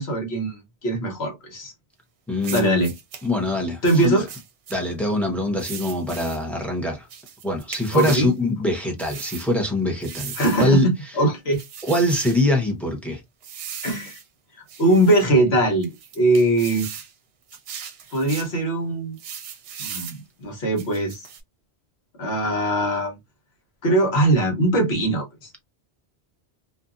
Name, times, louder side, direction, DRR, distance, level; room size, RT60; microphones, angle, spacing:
voice 1, 0.0-1.7 2.5-2.9 3.8-4.3 7.9-8.3 10.4-11.6 13.8-14.2 14.8-16.9 18.1-19.2 19.8-21.3 22.2-23.2 23.8-25.5, right 1 dB, 70° left, 1.3 m, -21 dB
voice 2, 2.3-2.9 3.2-4.2 4.7-7.1 7.4-10.9 11.8-13.2, left 1 dB, ahead, 0.6 m, -23 dB
sound 1, 2.4-3.3 3.8-4.8 5.6-6.4 7.1-8.3 9.0-9.5 10.0-10.7 11.5-12.4 13.4-14.2 14.7-15.3 15.8-17.1 17.5-18.5 19.2-20.2 20.8-21.4, right 8 dB, 70° right, 0.8 m, -38 dB
2.6 x 2.5 x 2.4 m
omnidirectional pair, 1.1 m